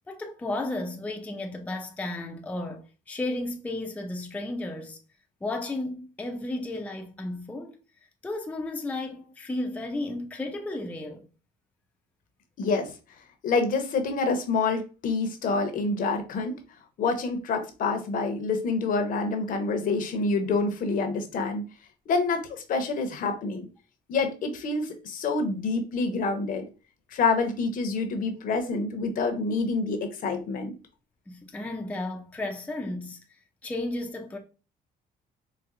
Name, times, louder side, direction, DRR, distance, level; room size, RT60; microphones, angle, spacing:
voice 1, 0.1-5.0 5.4-7.8 8.2-11.2 31.3-33.2 33.6-34.4, left 2 dB, 10° left, 0.4 m, -33 dB
voice 2, 12.6-12.9 13.4-16.6 17.0-21.6 22.1-23.7 24.1-26.7 27.1-30.7, left 4 dB, 55° left, 0.7 m, -27 dB
4.0 x 2.1 x 2.5 m
cardioid pair, 110°, 17 cm